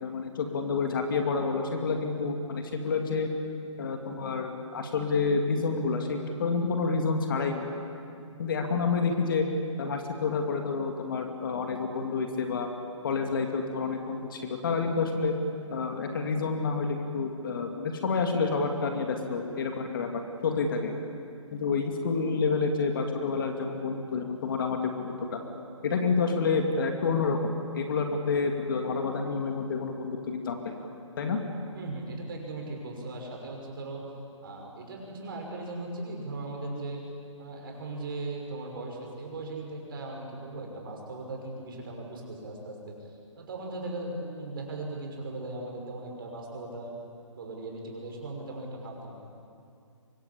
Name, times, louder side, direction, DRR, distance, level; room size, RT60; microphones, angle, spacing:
voice 1, 0.0-3.3 3.8-7.7 8.4-9.5 9.8-12.7 13.0-15.3 15.7-20.1 20.4-20.9 21.5-25.4 25.8-30.9 31.2-31.4, left 4 dB, 40° left, 4 dB, 2.6 m, -29 dB
voice 2, 31.7-34.0 34.4-37.0 37.4-46.9 47.3-49.1, right 2 dB, 45° right, 0 dB, 6.1 m, -38 dB
24.5 x 20.5 x 8.5 m, 2.5 s
hypercardioid pair, 160°, 17 cm